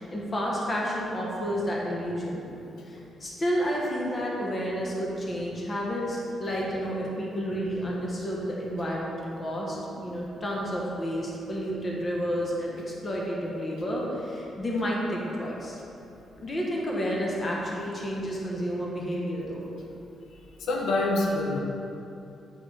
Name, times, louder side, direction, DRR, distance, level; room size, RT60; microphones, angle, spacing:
voice 1, 0.0-2.5 2.9-15.8 16.4-19.6, equal, 25° left, -3 dB, 1.1 m, -30 dB
voice 2, 20.6-21.6, left 2 dB, 90° left, 0 dB, 0.8 m, -25 dB
8.4 x 3.8 x 4.9 m, 2.8 s
cardioid pair, 160°, 0 cm